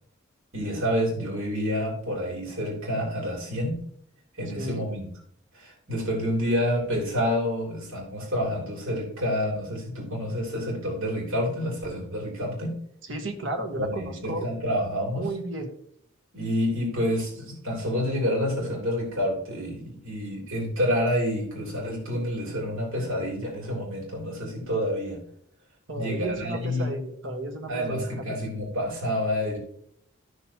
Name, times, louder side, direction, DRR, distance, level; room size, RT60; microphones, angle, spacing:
voice 1, 0.5-3.7 4.4-5.1 5.5-12.7 13.8-15.3 16.3-25.2 25.9-26.9 27.7-29.6, equal, 85° right, -2 dB, 3.4 m, -28 dB
voice 2, 4.5-4.9 13.1-14.5 15.2-15.7 25.9-28.1, right 2 dB, 65° right, 4 dB, 1.5 m, -33 dB
13.5 x 6.5 x 3.0 m, 0.66 s
head